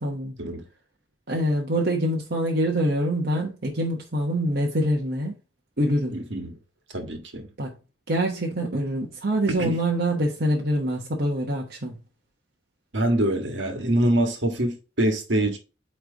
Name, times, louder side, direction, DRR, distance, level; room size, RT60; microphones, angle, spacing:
voice 1, 0.0-0.3 1.3-5.3 5.8-6.2 7.6-7.7 8.1-12.0, equal, 55° right, 1.1 m, -25 dB
voice 2, 6.1-6.6 6.9-7.5 9.5-9.8 12.9-15.6, right 1 dB, 75° right, 1.6 m, -25 dB
8.8 x 3.3 x 4.0 m
head